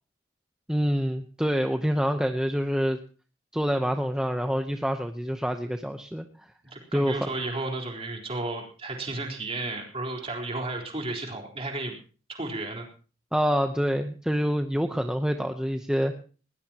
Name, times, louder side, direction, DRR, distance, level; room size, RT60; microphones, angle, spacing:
voice 1, 0.7-3.0 3.5-6.5 6.9-7.3 13.3-16.1, equal, 5° right, 5 dB, 0.9 m, -26 dB
voice 2, 6.6-11.9 12.3-12.8, right 2 dB, 30° right, 1 dB, 4.1 m, -33 dB
20.0 x 19.5 x 3.0 m, 0.38 s
head